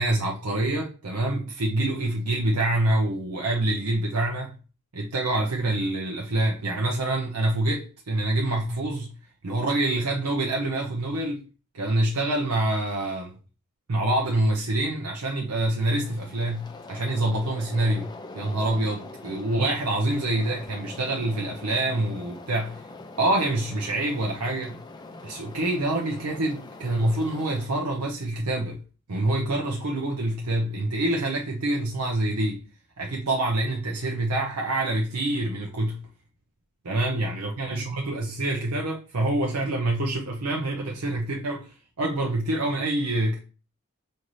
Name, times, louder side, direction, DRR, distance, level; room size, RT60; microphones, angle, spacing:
voice 1, 0.0-4.5 4.9-9.1 9.4-11.4 11.7-13.3 13.9-18.1 18.3-22.9 23.2-24.8 25.2-28.8 29.1-32.6 33.0-36.0 36.8-43.4, right 1 dB, 85° right, 0.7 m, -26 dB
sound 1, 15.9-27.7, left 2 dB, 20° left, 0.4 m, -43 dB
5.3 x 2.6 x 3.1 m
head